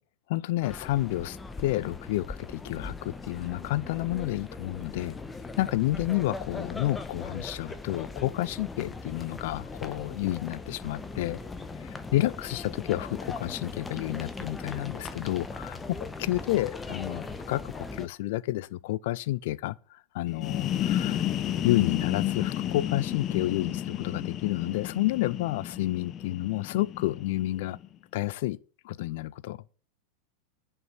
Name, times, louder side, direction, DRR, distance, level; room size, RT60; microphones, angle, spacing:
voice 1, 0.3-5.2 5.6-11.4 11.8-21.3 21.6-27.8 28.1-28.6 28.8-29.6, left 16 dB, 60° left, 0.5 m, -30 dB
sound 1, 0.6-18.1, left 3 dB, 15° left, 1.1 m, -39 dB
sound 2, 20.3-27.9, left 11 dB, 35° left, 0.9 m, -32 dB
11.0 x 5.5 x 8.0 m
figure-of-eight pair, 90°, 0 cm